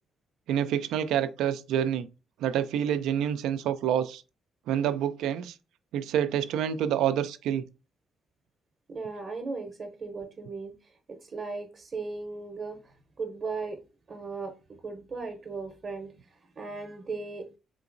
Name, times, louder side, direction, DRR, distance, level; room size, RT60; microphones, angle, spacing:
voice 1, 0.5-2.1 2.4-4.2 4.7-5.5 5.9-7.6, right 9 dB, 85° right, 0.3 m, -27 dB
voice 2, 8.9-13.8 14.1-14.5 14.8-16.1 16.6-17.5, right 4 dB, 40° right, 0.7 m, -37 dB
3.7 x 2.9 x 2.5 m
cardioid pair, 90°, 0 cm